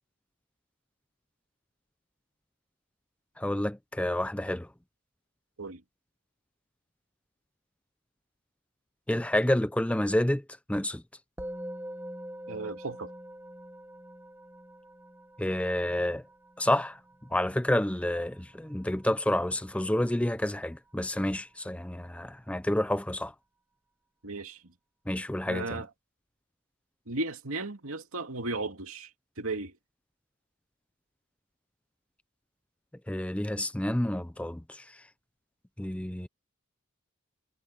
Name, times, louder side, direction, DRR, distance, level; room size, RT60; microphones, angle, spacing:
voice 1, 3.4-4.7 9.1-10.4 10.7-11.0 15.4-16.2 16.6-17.0 17.3-23.3 25.1-25.8 33.1-35.1 35.8-36.3, left 1 dB, 5° left, 0.5 m, -29 dB
Musical instrument, 11.4-20.9, equal, 10° right, 1.2 m, -45 dB
voice 2, 12.5-13.1 24.2-24.6 25.5-25.9 27.1-29.1 29.4-29.8, right 3 dB, 80° right, 2.5 m, -35 dB
head